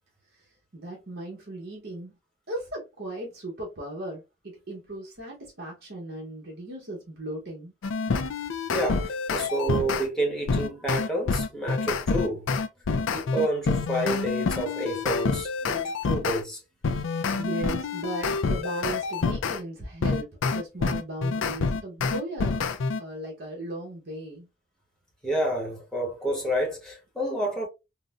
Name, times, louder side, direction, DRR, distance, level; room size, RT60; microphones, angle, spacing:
voice 1, 0.7-2.2 2.5-7.7 17.1-22.6 23.0-24.5, right 1 dB, 55° right, 1.0 m, -37 dB
sound 1, 7.8-10.1 10.5-16.4 16.8-19.6 20.0-23.0, left 4 dB, 75° left, 0.4 m, -27 dB
voice 2, 8.7-12.5 13.1-16.6 25.2-27.7, right 1 dB, 5° left, 1.1 m, -29 dB
3.9 x 2.2 x 2.4 m
head